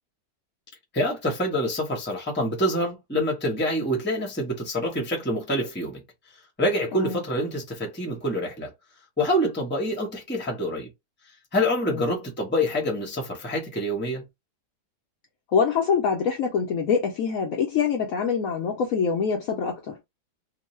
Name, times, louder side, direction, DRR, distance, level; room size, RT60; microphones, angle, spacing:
voice 1, 0.9-6.0 6.6-8.7 9.2-10.9 11.5-14.2, equal, 10° left, 0.6 m, -26 dB
voice 2, 15.5-20.0, left 6 dB, 70° left, 0.8 m, -25 dB
3.0 x 2.1 x 3.0 m
omnidirectional pair, 1.9 m